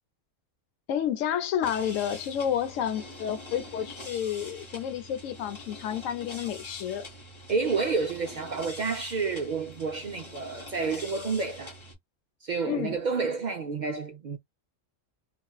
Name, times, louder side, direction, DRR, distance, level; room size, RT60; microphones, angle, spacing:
voice 1, 0.9-7.1 12.7-13.0, left 9 dB, 85° left, 1.0 m, -30 dB
sound 1, 1.6-11.9, left 1 dB, 25° left, 0.7 m, -44 dB
voice 2, 7.5-11.8 12.4-14.4, right 4 dB, 70° right, 0.4 m, -30 dB
2.7 x 2.4 x 2.2 m
omnidirectional pair, 1.3 m